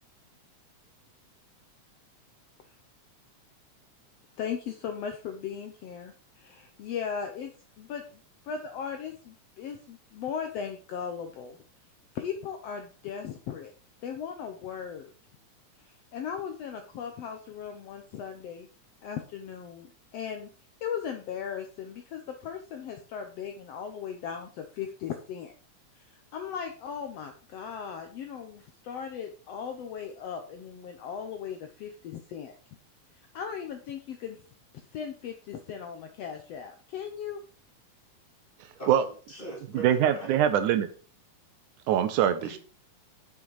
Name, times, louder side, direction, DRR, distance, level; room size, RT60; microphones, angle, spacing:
voice 1, 4.4-7.5 7.8-8.0 8.5-11.6 12.2-13.7 14.0-15.1 16.1-18.7 19.0-20.5 20.8-25.5 26.1-32.6 33.3-34.4 34.9-37.4, left 7 dB, 70° left, 5 dB, 1.6 m, -37 dB
voice 2, 38.7-40.3 42.4-42.6, right 2 dB, 15° left, -2 dB, 2.8 m, -41 dB
voice 3, 39.7-40.9 41.9-42.6, right 10 dB, 80° right, 10 dB, 2.2 m, -23 dB
7.2 x 6.2 x 4.7 m, 0.39 s
omnidirectional pair, 3.6 m